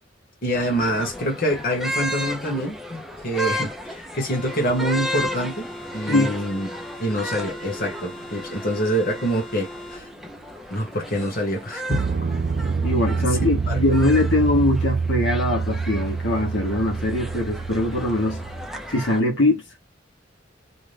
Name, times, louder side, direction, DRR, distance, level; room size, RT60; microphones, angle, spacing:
voice 1, 0.4-5.7 5.9-6.7 7.0-10.1 10.7-12.2 13.2-13.3 13.7-13.8, equal, 50° left, 1.2 m, -26 dB
sound 1, 0.5-19.2, equal, ahead, 0.5 m, -35 dB
sound 2, 4.3-10.0, left 1 dB, 30° left, 1.1 m, -39 dB
sound 3, 11.9-18.7, right 5 dB, 55° right, 0.4 m, -26 dB
voice 2, 12.8-18.4 18.9-19.8, left 1 dB, 75° left, 1.1 m, -22 dB
2.7 x 2.5 x 3.3 m
head